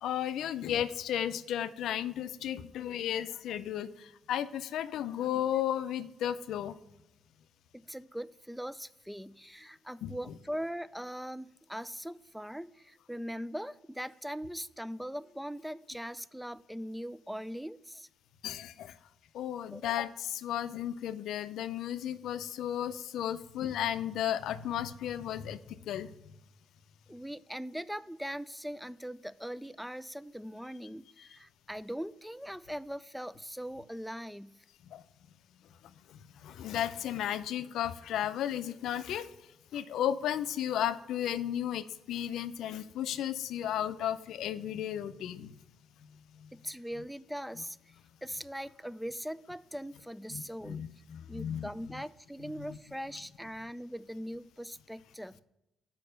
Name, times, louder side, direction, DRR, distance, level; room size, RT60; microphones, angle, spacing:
voice 1, 0.0-6.8 10.0-10.2 18.4-19.0 19.3-26.1 34.8-35.0 35.8-39.3 39.7-45.6 46.0-46.5 50.3-52.0 52.4-52.8, left 10 dB, 80° left, 13 dB, 0.4 m, -34 dB
voice 2, 7.7-18.1 19.7-20.0 27.1-34.6 46.5-47.8 48.2-50.8 51.3-55.4, equal, ahead, 17 dB, 0.3 m, -41 dB
6.6 x 5.2 x 6.4 m, 0.92 s
cardioid pair, 90°, 0 cm